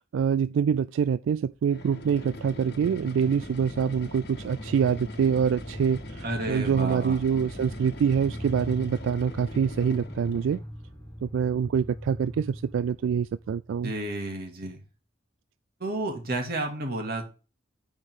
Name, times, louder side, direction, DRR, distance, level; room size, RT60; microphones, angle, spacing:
voice 1, 0.0-10.6 11.2-13.9, right 7 dB, 80° right, 0.3 m, -25 dB
sound 1, 1.4-14.2, equal, 15° left, 1.8 m, -42 dB
sound 2, 1.6-10.7, left 1 dB, 55° left, 1.3 m, -42 dB
voice 2, 6.2-7.2 13.8-14.8 15.8-17.3, right 2 dB, 50° right, 2.3 m, -31 dB
9.5 x 5.0 x 3.7 m
head